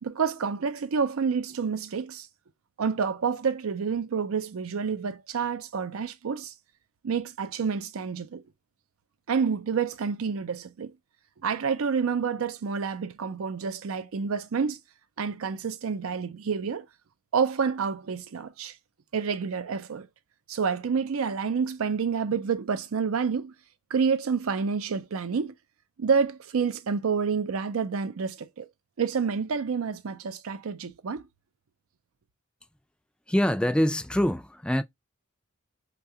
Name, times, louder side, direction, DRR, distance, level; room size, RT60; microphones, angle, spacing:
voice 1, 0.0-2.3 2.8-6.5 7.0-8.4 9.3-10.9 11.4-14.8 15.2-16.9 17.3-18.8 19.1-20.1 20.5-23.5 23.9-25.5 26.0-28.7 29.0-31.2, right 6 dB, 85° right, 0.5 m, -28 dB
voice 2, 33.3-34.8, equal, 5° left, 0.3 m, -24 dB
5.5 x 2.3 x 2.7 m
head